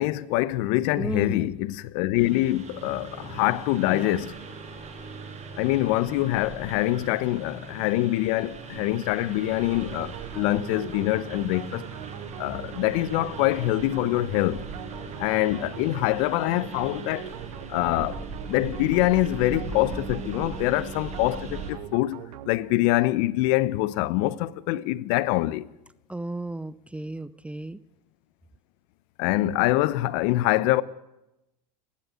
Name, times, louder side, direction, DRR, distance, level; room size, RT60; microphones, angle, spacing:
voice 1, 0.0-4.3 5.6-11.9 12.4-14.6 15.2-17.3 17.7-25.6 29.2-30.8, left 17 dB, 60° left, 1.0 m, -25 dB
voice 2, 1.0-1.5 3.9-4.1 14.5-14.6 26.1-27.8, right 1 dB, 5° right, 0.7 m, -34 dB
Engine, 2.2-21.7, right 4 dB, 30° right, 7.3 m, -39 dB
sound 1, 9.7-23.0, right 12 dB, 75° right, 1.4 m, -42 dB
29.0 x 11.5 x 9.4 m
hypercardioid pair, 95°, 21 cm